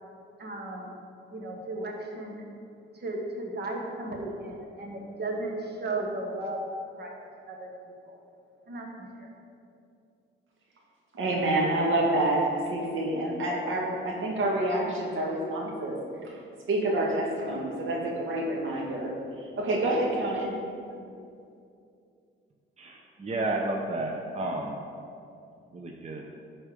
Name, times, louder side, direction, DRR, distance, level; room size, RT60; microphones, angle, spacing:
voice 1, 0.4-0.9 1.3-2.4 2.9-6.6 7.0-7.2 7.5-7.7 8.0-8.2 8.7-9.3, right 2 dB, 50° right, 1 dB, 1.7 m, -35 dB
voice 2, 11.1-16.0 16.3-16.4 16.7-19.1 19.6-20.5, right 1 dB, 75° right, -1 dB, 1.9 m, -27 dB
voice 3, 22.8-24.7 25.7-26.2, right 2 dB, 30° right, 1 dB, 0.8 m, -32 dB
12.5 x 4.4 x 5.1 m, 2.5 s
cardioid pair, 100°, 21 cm